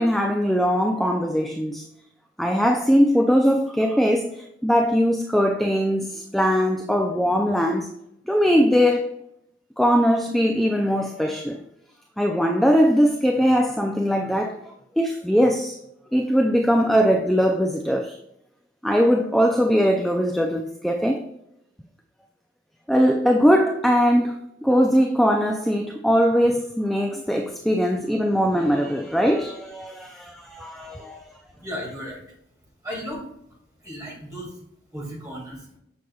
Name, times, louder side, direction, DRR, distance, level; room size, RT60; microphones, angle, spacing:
voice 1, 0.0-1.8 2.4-7.9 8.3-9.1 9.8-11.6 12.2-14.6 15.0-15.8 16.1-18.2 18.8-21.3 22.9-31.2, equal, ahead, 0.3 m, -21 dB
voice 2, 31.5-32.2 32.8-33.2 33.8-34.5 34.9-35.7, equal, 15° right, 2.0 m, -34 dB
6.9 x 6.2 x 2.3 m
head